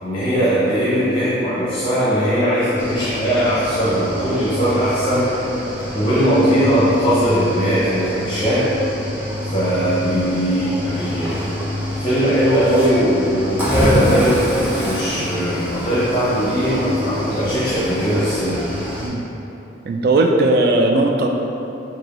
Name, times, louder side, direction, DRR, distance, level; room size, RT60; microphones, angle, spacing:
voice 1, 0.0-5.4 5.9-8.7 9.4-11.7 11.9-18.6, equal, 25° left, -10 dB, 0.7 m, -19 dB
Cricket / Waves surf, 2.8-19.1, equal, 10° right, 0.7 m, -26 dB
voice 2, 19.9-21.3, right 2 dB, 55° right, 2 dB, 0.4 m, -17 dB
4.7 x 2.8 x 3.0 m, 3.0 s
head